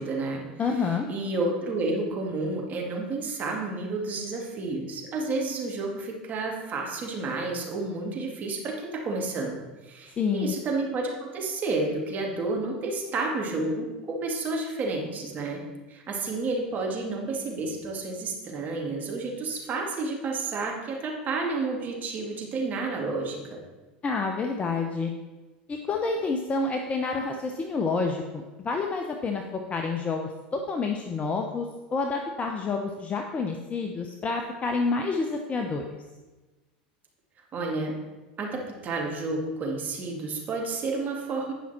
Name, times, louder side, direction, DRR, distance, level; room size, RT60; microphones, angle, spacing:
voice 1, 0.0-0.4 0.7-15.6 15.9-23.6 37.5-37.9 38.4-41.5, right 3 dB, 35° right, 0 dB, 2.3 m, -30 dB
voice 2, 0.6-1.0 10.2-10.5 24.0-25.1 25.7-29.4 29.7-31.7 31.9-36.0, left 4 dB, 25° left, 4 dB, 0.8 m, -28 dB
10.5 x 5.7 x 4.3 m, 1.2 s
hypercardioid pair, 95°, 5 cm